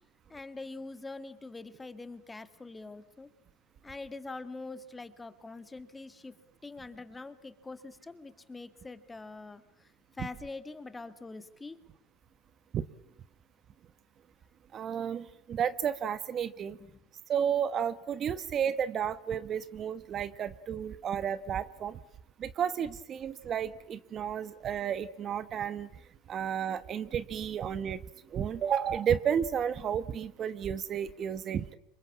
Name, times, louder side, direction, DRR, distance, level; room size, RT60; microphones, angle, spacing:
voice 1, 0.3-3.3 3.8-6.3 6.6-11.8 16.6-17.0, left 3 dB, 15° left, 11 dB, 2.1 m, -44 dB
voice 2, 14.7-16.8 17.3-22.0 22.4-25.9 26.3-28.0 28.3-31.8, right 8 dB, 35° right, 14 dB, 1.1 m, -32 dB
26.5 x 23.0 x 8.6 m, 0.75 s
supercardioid pair, 110°, 0 cm